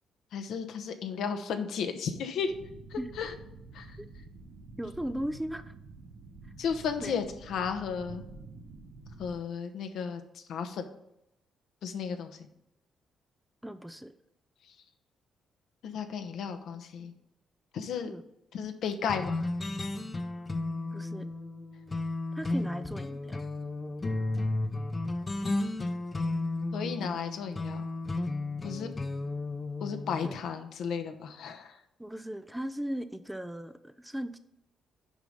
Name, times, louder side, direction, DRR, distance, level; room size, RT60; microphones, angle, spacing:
voice 1, 0.3-2.5 2.9-3.3 3.7-4.0 6.6-8.2 9.2-10.9 11.8-12.4 15.8-17.1 17.7-18.1 18.5-19.5 26.7-27.9 28.6-28.9 29.8-31.8, left 6 dB, 75° left, 7 dB, 0.9 m, -34 dB
sound 1, 2.4-9.3, right 3 dB, 85° right, 1.5 m, -48 dB
voice 2, 4.8-5.6 7.0-7.2 13.6-14.1 18.0-18.2 20.9-21.3 22.3-23.4 30.2-30.4 32.0-34.4, equal, 5° right, 10 dB, 0.5 m, -37 dB
sound 2, 19.1-30.4, left 2 dB, 25° left, 0.7 m, -33 dB
6.4 x 5.0 x 5.5 m, 0.81 s
cardioid pair, 90°, 0 cm